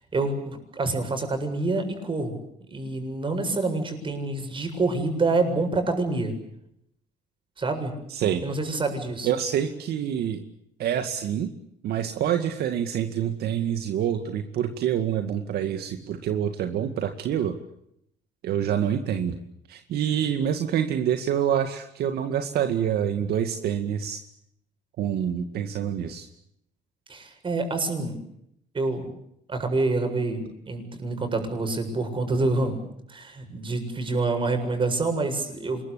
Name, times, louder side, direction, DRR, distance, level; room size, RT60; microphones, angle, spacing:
voice 1, 0.1-2.4 2.7-6.3 7.6-7.9 8.4-9.3 27.1-28.2 28.7-29.1 29.5-32.8 33.1-35.8, right 3 dB, 30° right, 6 dB, 7.4 m, -27 dB
voice 2, 8.1-8.4 9.2-10.4 10.8-11.5 11.8-17.6 18.4-19.4 19.7-24.2 25.0-26.3, right 9 dB, 70° right, 6 dB, 2.2 m, -26 dB
26.5 x 22.0 x 8.6 m, 0.76 s
cardioid pair, 110°, 17 cm